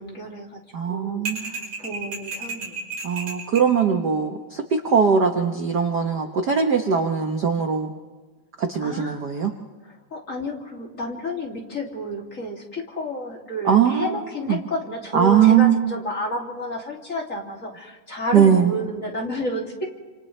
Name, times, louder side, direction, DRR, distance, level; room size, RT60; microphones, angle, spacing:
voice 1, 0.0-0.6 0.9-2.8 8.8-9.3 9.8-19.9, left 1 dB, 25° left, -2 dB, 2.9 m, -31 dB
voice 2, 0.7-1.6 3.0-7.9 8.6-9.5 13.6-14.2 14.5-14.6 15.1-15.8 18.3-18.7, right 7 dB, 65° right, 4 dB, 1.0 m, -20 dB
sound 1, 1.3-3.7, right 4 dB, 45° right, 6.4 m, -32 dB
28.5 x 27.5 x 3.3 m, 1.3 s
omnidirectional pair, 3.5 m